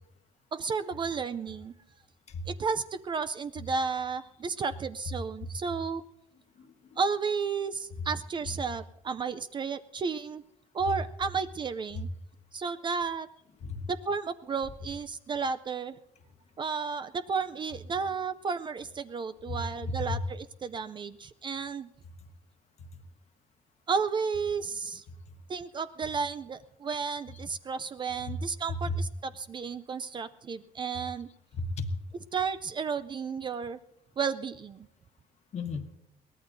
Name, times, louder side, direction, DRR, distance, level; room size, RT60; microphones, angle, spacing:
voice 1, 0.5-1.7 2.5-6.0 7.0-10.4 10.7-12.1 12.5-13.3 13.9-16.0 16.6-21.9 23.9-25.0 25.5-31.3 32.3-33.8 34.2-34.9, right 5 dB, 30° right, 12 dB, 0.4 m, -33 dB
voice 2, 6.6-7.0 8.5-8.6 13.6-13.9 19.5-20.2 22.8-22.9 28.2-28.4 28.7-29.0 31.5-31.9 35.5-35.9, left 2 dB, 45° left, 7 dB, 1.3 m, -34 dB
22.5 x 18.0 x 2.6 m, 0.83 s
cardioid pair, 130°, 16 cm